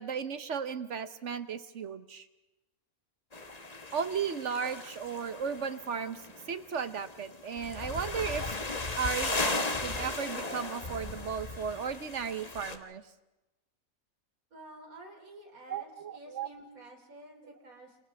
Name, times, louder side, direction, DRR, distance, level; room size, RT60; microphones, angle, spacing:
voice 1, 0.0-2.2 3.9-6.2 6.5-8.4 9.0-13.0 15.7-16.5, right 6 dB, 60° right, 11 dB, 1.2 m, -35 dB
sound 1, 3.3-12.8, left 3 dB, 30° left, 1.3 m, -37 dB
voice 2, 14.5-18.0, right 1 dB, 75° right, 3 dB, 3.5 m, -51 dB
29.0 x 28.5 x 3.5 m, 1.0 s
omnidirectional pair, 1.5 m